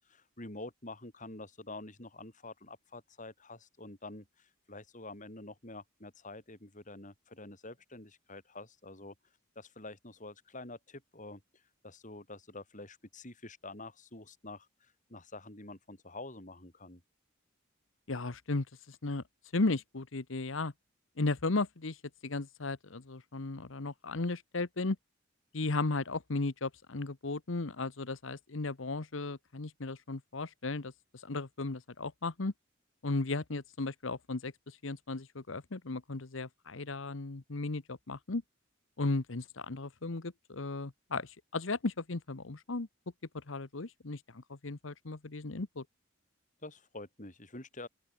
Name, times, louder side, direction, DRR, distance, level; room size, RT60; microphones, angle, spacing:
voice 1, 0.0-9.1 9.6-17.0 46.6-47.9, left 2 dB, 40° left, 5.4 m, -47 dB
voice 2, 18.1-19.2 19.5-20.7 21.2-22.0 22.2-25.0 25.5-30.9 31.2-32.5 33.0-38.4 39.0-42.9 43.3-45.8, left 3 dB, 70° left, 1.1 m, -35 dB
open air
head